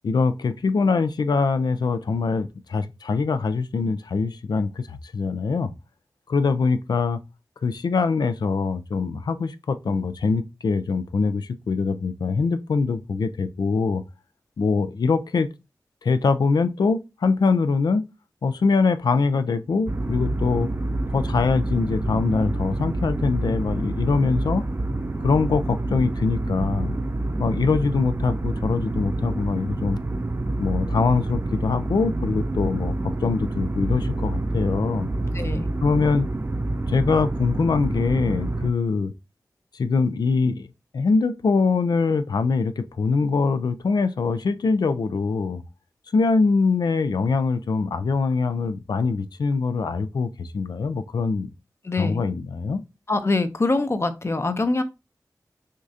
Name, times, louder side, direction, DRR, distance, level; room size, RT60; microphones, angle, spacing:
voice 1, 0.0-5.7 6.3-7.2 7.6-14.0 14.6-15.5 16.0-18.0 18.4-20.7 21.1-24.7 25.2-27.0 27.4-30.0 30.6-35.1 35.8-36.3 36.9-39.1 39.8-40.7 40.9-45.6 46.1-51.5 52.0-52.8, left 4 dB, 85° left, 0.4 m, -23 dB
sound 1, 19.9-38.7, right 2 dB, 35° right, 0.4 m, -27 dB
voice 2, 35.3-35.7 51.8-52.2 53.1-54.8, left 3 dB, 40° left, 0.6 m, -24 dB
6.3 x 2.5 x 2.7 m
wide cardioid pair, 65°, 7 cm